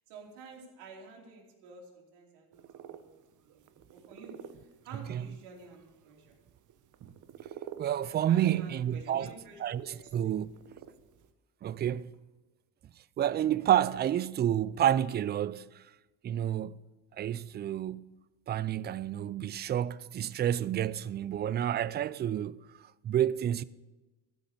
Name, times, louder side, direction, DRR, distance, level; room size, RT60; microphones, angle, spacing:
voice 1, 0.1-6.3 8.3-10.5 17.3-17.5, right 4 dB, 80° right, 3.4 m, -51 dB
sound 1, 2.5-11.3, right 9 dB, 45° right, 1.0 m, -51 dB
voice 2, 7.8-9.3 9.6-10.6 11.6-12.1 13.2-15.8 16.2-16.8 17.1-18.1 18.5-22.7 23.0-23.6, right 11 dB, 25° right, 0.3 m, -29 dB
13.5 x 6.1 x 8.4 m
supercardioid pair, 100°, 41 cm